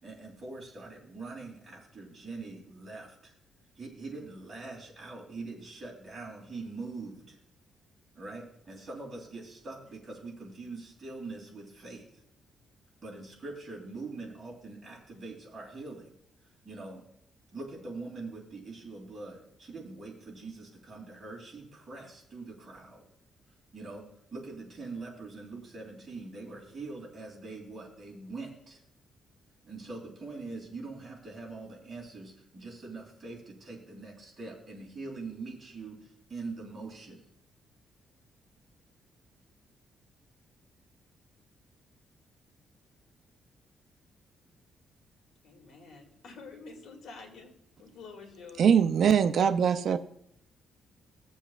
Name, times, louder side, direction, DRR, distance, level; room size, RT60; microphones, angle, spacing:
voice 1, 0.0-3.3 3.8-7.4 8.1-12.1 13.0-16.1 16.6-17.0 17.5-23.1 23.7-28.8 29.6-37.2, right 3 dB, 25° right, -3 dB, 2.7 m, -43 dB
voice 2, 45.4-47.5 47.8-48.7, left 4 dB, 70° left, 1 dB, 2.3 m, -48 dB
voice 3, 48.6-50.0, right 7 dB, 55° right, 10 dB, 0.4 m, -22 dB
17.0 x 7.1 x 2.4 m, 0.74 s
cardioid pair, 165°, 0 cm